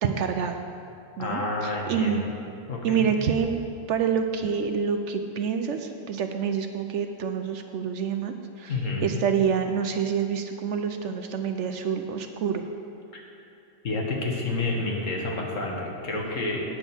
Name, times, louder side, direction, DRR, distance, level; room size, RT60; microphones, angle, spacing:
voice 1, 0.0-0.6 1.2-2.3 2.8-3.6 3.9-12.6, right 7 dB, 65° right, 6 dB, 0.8 m, -27 dB
voice 2, 1.2-2.3 2.7-3.1 8.7-9.1 13.8-16.6, left 2 dB, 65° left, -1 dB, 1.7 m, -29 dB
9.2 x 6.0 x 7.0 m, 2.6 s
omnidirectional pair, 1.4 m